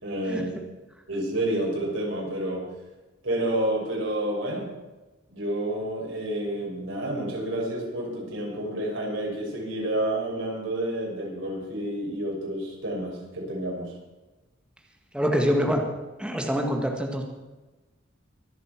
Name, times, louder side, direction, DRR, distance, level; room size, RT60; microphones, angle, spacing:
voice 1, 0.0-0.5 1.1-2.6 3.2-4.7 5.3-13.9, right 1 dB, 85° right, -1 dB, 5.8 m, -29 dB
voice 2, 15.1-15.9 16.2-17.2, equal, 5° right, 1 dB, 1.7 m, -25 dB
24.0 x 8.3 x 6.0 m, 1.1 s
head